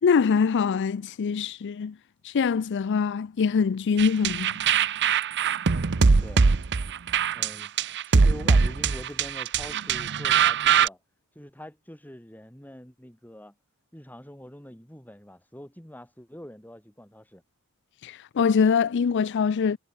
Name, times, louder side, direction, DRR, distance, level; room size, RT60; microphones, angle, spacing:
voice 1, 0.0-1.9 2.2-4.6 18.0-19.8, left 6 dB, 55° left, 0.4 m, -23 dB
sound 1, 4.0-10.9, right 5 dB, 55° right, 0.7 m, -22 dB
voice 2, 5.7-6.5 7.3-7.7 8.1-11.0 11.3-13.5 13.9-17.4, equal, 10° left, 6.4 m, -44 dB
head